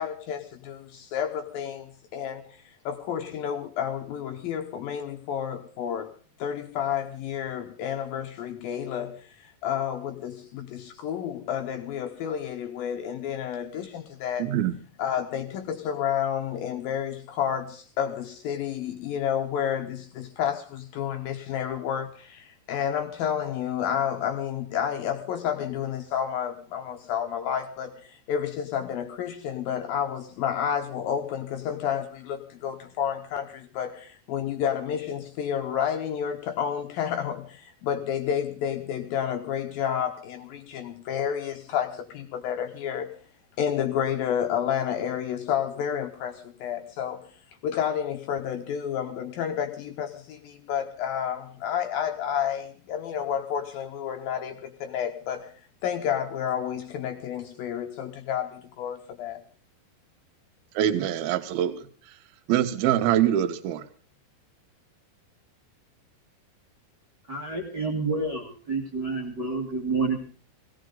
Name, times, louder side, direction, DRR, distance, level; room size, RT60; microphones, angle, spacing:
voice 1, 0.0-6.1 6.4-14.5 15.0-43.1 43.6-47.2 47.6-55.5 55.8-59.4, left 9 dB, 75° left, 2.2 m, -30 dB
voice 2, 14.4-14.7 60.7-61.9 62.5-63.9, right 11 dB, 70° right, 2.7 m, -24 dB
voice 3, 67.3-70.2, right 3 dB, 40° right, 1.6 m, -29 dB
18.0 x 17.5 x 3.9 m
omnidirectional pair, 5.2 m